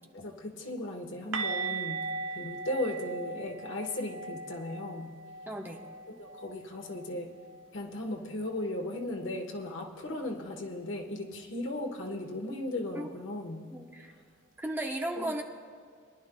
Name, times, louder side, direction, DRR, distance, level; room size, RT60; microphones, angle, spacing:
voice 1, 0.1-2.0 2.3-5.1 6.1-7.3 7.7-13.7 15.2-15.4, left 1 dB, 80° left, 3 dB, 1.2 m, -36 dB
sound 1, 1.3-7.1 7.4-7.6 7.9-8.1 11.3-11.4, right 4 dB, 75° right, 0.6 m, -39 dB
voice 2, 5.5-5.8 12.9-13.1 13.7-14.1 14.6-15.4, right 1 dB, 10° right, 1 dB, 0.8 m, -35 dB
23.0 x 11.0 x 2.2 m, 2.1 s
head